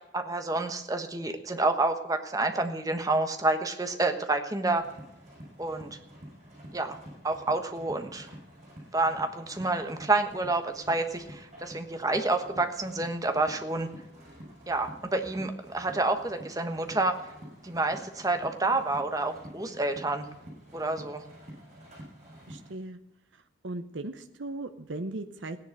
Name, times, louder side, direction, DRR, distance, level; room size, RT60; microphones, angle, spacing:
voice 1, 0.0-4.9 5.6-6.0 6.7-7.0 7.2-8.3 8.9-13.9 14.7-17.2 17.6-20.3 20.7-21.2, right 2 dB, 20° right, 7 dB, 1.3 m, -29 dB
sound 1, 4.8-22.7, equal, 35° right, 7.6 m, -48 dB
voice 2, 22.5-23.0 23.6-25.6, right 2 dB, 70° right, 8 dB, 0.9 m, -37 dB
16.0 x 10.5 x 6.6 m, 0.91 s
head